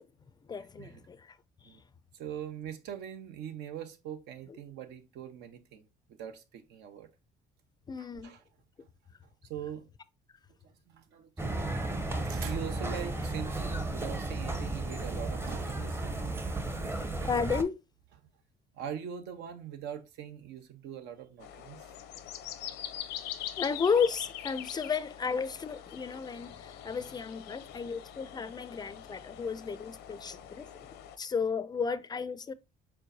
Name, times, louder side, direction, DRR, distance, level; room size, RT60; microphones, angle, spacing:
voice 1, 0.5-1.2 7.9-8.3 17.2-17.8 23.6-30.9 31.2-32.5, left 5 dB, 25° left, 0.4 m, -33 dB
voice 2, 2.1-7.1 8.0-8.4 9.5-9.9 10.6-11.6 12.2-16.0 16.9-17.0 18.7-21.9, right 9 dB, 85° right, 0.8 m, -42 dB
sound 1, 11.4-17.6, right 2 dB, 15° right, 0.6 m, -34 dB
sound 2, 21.4-31.2, left 11 dB, 90° left, 0.6 m, -43 dB
4.6 x 4.3 x 2.6 m
cardioid pair, 110°, 17 cm